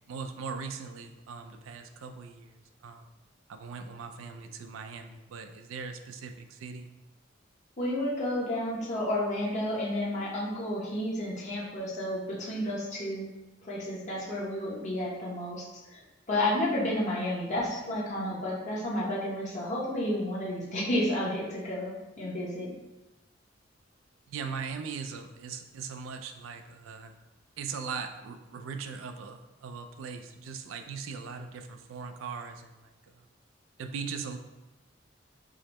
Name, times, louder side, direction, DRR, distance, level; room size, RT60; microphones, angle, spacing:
voice 1, 0.1-3.1 3.5-6.9 24.3-27.1 27.6-33.3 33.8-34.4, right 5 dB, 90° right, 7 dB, 0.3 m, -40 dB
voice 2, 7.8-13.2 13.6-15.6 15.9-16.0 16.3-22.7, left 1 dB, 40° left, -5 dB, 0.8 m, -31 dB
4.8 x 2.0 x 2.9 m, 1.0 s
head